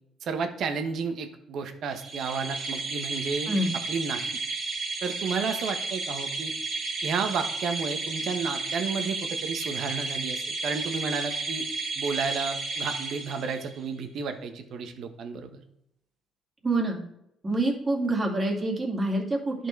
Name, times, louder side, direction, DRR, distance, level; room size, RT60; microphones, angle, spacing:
voice 1, 0.2-3.5 3.9-4.2 5.0-6.5 7.0-11.7 12.0-15.6, right 5 dB, 65° right, 8 dB, 1.1 m, -32 dB
sound 1, 1.9-13.8, right 3 dB, 50° right, 2.1 m, -33 dB
voice 2, 16.6-17.0 17.4-19.7, right 2 dB, 25° right, 0 dB, 2.3 m, -26 dB
11.0 x 4.6 x 4.6 m, 0.79 s
cardioid pair, 85°, 0 cm